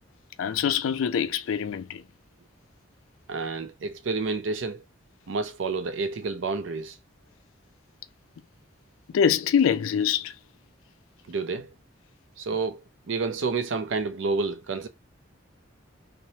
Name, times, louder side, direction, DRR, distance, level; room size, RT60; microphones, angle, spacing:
voice 1, 0.4-2.0 9.1-10.3, left 7 dB, 85° left, 0.3 m, -24 dB
voice 2, 3.3-4.8 5.3-7.0 11.3-11.7 12.4-14.9, right 4 dB, 70° right, 0.5 m, -29 dB
3.1 x 2.0 x 2.7 m
head